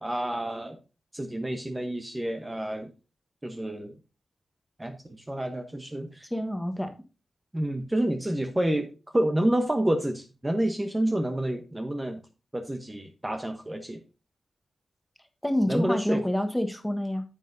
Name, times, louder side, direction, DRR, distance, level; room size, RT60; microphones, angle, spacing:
voice 1, 0.0-0.8 1.1-2.9 3.4-3.9 4.8-6.3 7.5-12.2 12.5-14.0 15.7-16.2, right 1 dB, 15° right, 5 dB, 1.0 m, -29 dB
voice 2, 6.3-6.9 15.4-17.2, left 1 dB, 5° left, 7 dB, 1.3 m, -27 dB
9.9 x 7.4 x 2.6 m, 0.31 s
wide cardioid pair, 95°, 0 cm